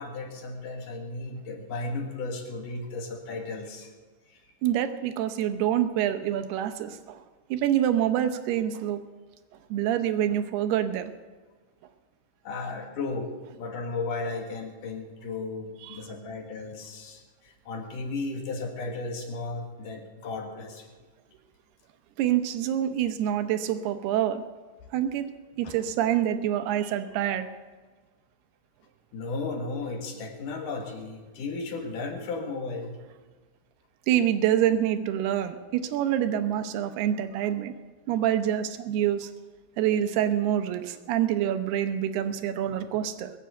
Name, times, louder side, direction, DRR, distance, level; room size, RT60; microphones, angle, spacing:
voice 1, 0.0-3.9 4.3-4.5 12.4-13.3 13.6-20.9 25.6-25.7 29.1-33.0 36.3-36.4, left 3 dB, 60° left, 3 dB, 3.0 m, -35 dB
voice 2, 4.6-7.2 7.5-9.0 9.7-11.1 15.9-16.0 22.2-24.4 24.9-25.3 25.6-27.5 34.1-37.7 38.1-39.3 39.8-43.3, right 11 dB, 75° right, 10 dB, 2.8 m, -26 dB
21.5 x 8.2 x 7.9 m, 1.4 s
omnidirectional pair, 4.8 m